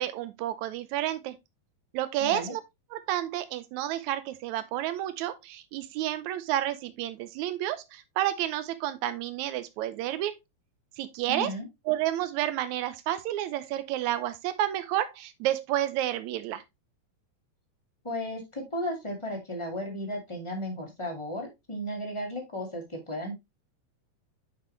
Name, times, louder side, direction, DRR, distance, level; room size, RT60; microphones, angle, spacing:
voice 1, 0.0-1.3 1.9-2.6 2.9-10.3 11.0-11.5 11.9-16.6, right 13 dB, 85° right, 1.6 m, -30 dB
voice 2, 2.2-2.5 11.3-11.7 18.0-23.4, left 1 dB, 15° left, 1.2 m, -34 dB
8.5 x 5.6 x 3.2 m
omnidirectional pair, 4.2 m